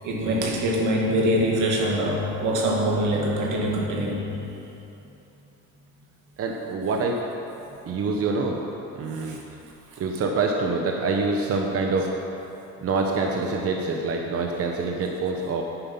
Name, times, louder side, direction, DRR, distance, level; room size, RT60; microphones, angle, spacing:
voice 1, 0.0-4.3 9.1-9.4 9.9-10.0, equal, 85° right, -1 dB, 2.1 m, -24 dB
voice 2, 6.4-7.2 7.8-8.6 8.9-9.4 10.0-12.1 12.8-15.6, right 3 dB, 50° right, 1 dB, 0.9 m, -26 dB
10.0 x 9.8 x 5.5 m, 3.0 s
cardioid pair, 125°, 30 cm